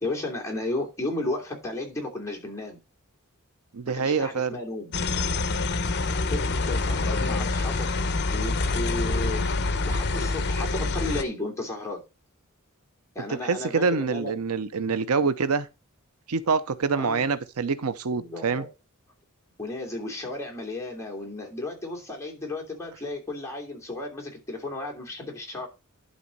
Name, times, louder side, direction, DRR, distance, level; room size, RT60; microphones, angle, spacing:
voice 1, 0.0-2.8 3.8-4.9 6.3-7.9 8.3-9.4 9.8-12.0 13.1-14.3 17.0-17.3 18.1-18.7 19.6-25.7, left 2 dB, 15° left, 2.9 m, -33 dB
voice 2, 3.7-4.5 13.4-15.7 16.3-18.6, right 5 dB, 85° right, 0.7 m, -26 dB
sound 1, 4.9-11.2, left 3 dB, 50° left, 0.9 m, -26 dB
11.5 x 4.2 x 5.3 m
head